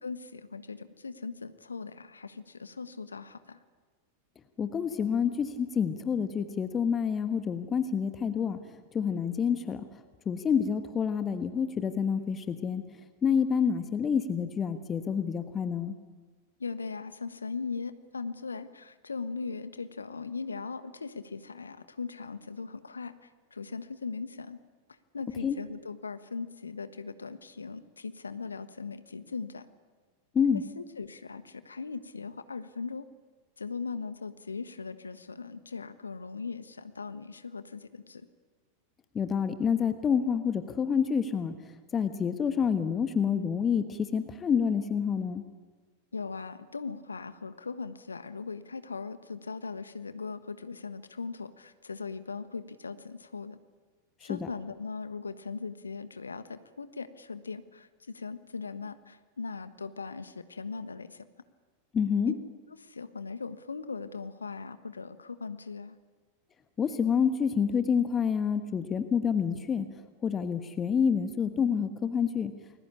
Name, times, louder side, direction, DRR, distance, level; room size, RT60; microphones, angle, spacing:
voice 1, 0.0-3.6 16.6-24.6 25.1-29.6 30.7-33.0 33.6-38.3 46.1-53.6 54.2-61.3 62.3-62.4 62.8-65.9, left 4 dB, 75° left, 12 dB, 1.4 m, -39 dB
voice 2, 4.6-8.6 8.9-9.8 10.2-12.8 13.2-15.9 25.4-25.6 30.3-30.6 39.1-41.5 41.9-45.4 54.2-54.5 61.9-62.3 66.8-69.9 70.2-72.5, left 7 dB, 20° left, 10 dB, 1.4 m, -28 dB
29.0 x 21.0 x 8.7 m, 1.4 s
figure-of-eight pair, 90°, 0 cm